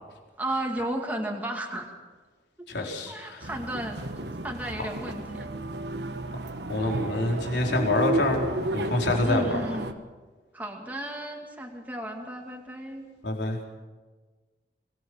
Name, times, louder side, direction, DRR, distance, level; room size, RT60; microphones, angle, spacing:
voice 1, 0.4-1.9 2.8-4.0 4.4-5.5 9.2-9.9 10.5-13.1, right 1 dB, 10° right, 1 dB, 2.2 m, -33 dB
voice 2, 2.7-3.5 6.7-8.5 8.7-9.4 13.2-13.6, left 2 dB, 80° left, 0 dB, 4.2 m, -26 dB
sound 1, 3.4-9.9, right 2 dB, 75° right, 1.3 m, -33 dB
24.5 x 19.0 x 6.4 m, 1.3 s
head